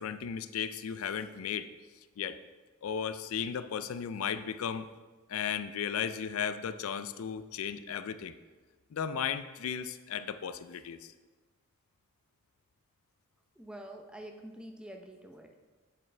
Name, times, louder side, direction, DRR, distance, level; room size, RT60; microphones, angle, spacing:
voice 1, 0.0-1.7 2.2-2.4 2.8-4.9 5.3-8.3 8.9-11.1, left 7 dB, 80° left, 12 dB, 0.4 m, -35 dB
voice 2, 13.6-15.5, right 1 dB, 5° right, 3 dB, 0.5 m, -47 dB
7.8 x 7.4 x 3.3 m, 1.3 s
head